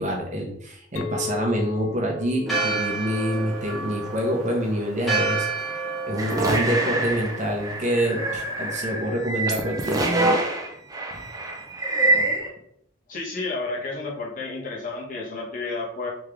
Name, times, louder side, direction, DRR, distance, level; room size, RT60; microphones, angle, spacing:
voice 1, 0.0-5.8 6.1-10.1, equal, 35° right, 0 dB, 0.8 m, -26 dB
Chink clink, 1.0-5.4, left 5 dB, 75° left, 0.3 m, -38 dB
Church bell, 2.5-8.7, right 4 dB, ahead, 1.0 m, -31 dB
sound 1, 6.2-12.5, right 2 dB, 20° right, 0.4 m, -25 dB
voice 2, 13.1-16.1, left 3 dB, 40° left, -4 dB, 1.2 m, -31 dB
3.6 x 3.2 x 3.5 m, 0.72 s
head